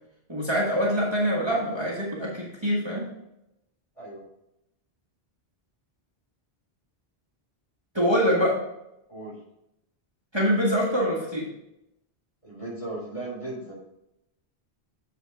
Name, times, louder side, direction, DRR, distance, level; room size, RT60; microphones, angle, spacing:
voice 1, 0.3-3.1 7.9-8.6 10.3-11.5, equal, 25° right, -5 dB, 1.5 m, -24 dB
voice 2, 4.0-4.3 9.1-9.4 12.4-13.7, right 2 dB, 30° left, -6 dB, 3.5 m, -36 dB
8.1 x 4.1 x 5.7 m, 0.85 s
omnidirectional pair, 1.1 m